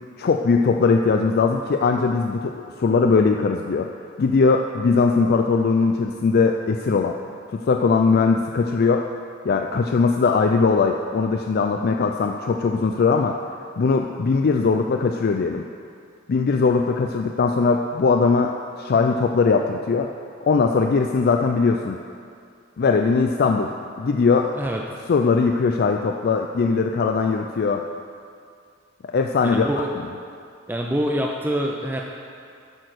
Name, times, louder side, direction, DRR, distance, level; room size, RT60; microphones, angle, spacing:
voice 1, 0.2-3.9 4.2-7.2 7.5-9.1 9.4-13.4 13.8-15.6 16.3-20.1 20.4-22.0 22.8-24.5 25.1-27.8 29.1-29.7, left 4 dB, 50° left, 3 dB, 0.4 m, -20 dB
voice 2, 29.4-29.9 30.7-32.0, right 1 dB, 10° right, 0 dB, 0.5 m, -25 dB
8.8 x 6.2 x 6.6 m, 2.3 s
head